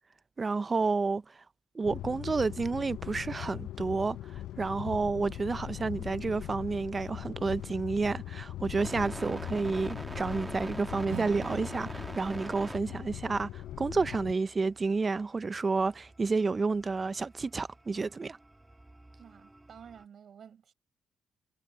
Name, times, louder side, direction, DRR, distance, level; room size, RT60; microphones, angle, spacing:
voice 1, 0.4-1.3 1.7-4.2 4.6-18.4, right 4 dB, 35° right, 0.6 m, -30 dB
sound 1, 1.8-14.3, left 13 dB, 75° left, 0.6 m, -41 dB
sound 2, 8.8-20.0, right 1 dB, 15° right, 1.5 m, -45 dB
Acoustic guitar / Strum, 11.1-15.9, right 15 dB, 85° right, 4.0 m, -49 dB
voice 2, 19.2-20.7, right 8 dB, 60° right, 5.9 m, -52 dB
supercardioid pair, 60°, 0 cm